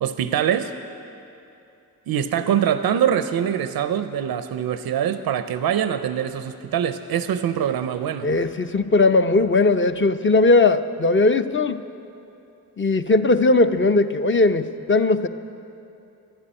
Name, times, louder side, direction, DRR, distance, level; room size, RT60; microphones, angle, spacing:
voice 1, 0.0-0.7 2.1-8.3, right 9 dB, 85° right, 10 dB, 0.5 m, -23 dB
voice 2, 8.2-11.8 12.8-15.3, left 3 dB, 35° left, 9 dB, 0.7 m, -18 dB
12.5 x 11.5 x 8.9 m, 2.7 s
cardioid pair, 50°, 35 cm